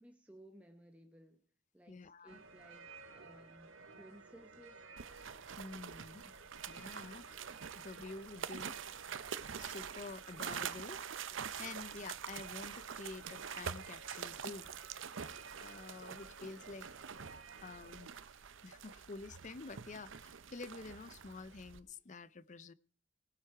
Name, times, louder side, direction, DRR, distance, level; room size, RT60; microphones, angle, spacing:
voice 1, 0.0-1.4 1.7-4.8, right 1 dB, 5° right, 0.8 m, -59 dB
voice 2, 1.9-2.4 5.6-6.3 6.7-7.4 7.7-8.8 9.6-11.0 11.3-14.7 15.6-16.9 17.6-18.1 18.6-22.7, left 3 dB, 40° left, 0.5 m, -49 dB
sound 1, 2.3-18.1, right 4 dB, 90° right, 2.1 m, -55 dB
sound 2, 5.0-21.8, right 7 dB, 75° right, 0.7 m, -46 dB
18.5 x 8.0 x 4.7 m
head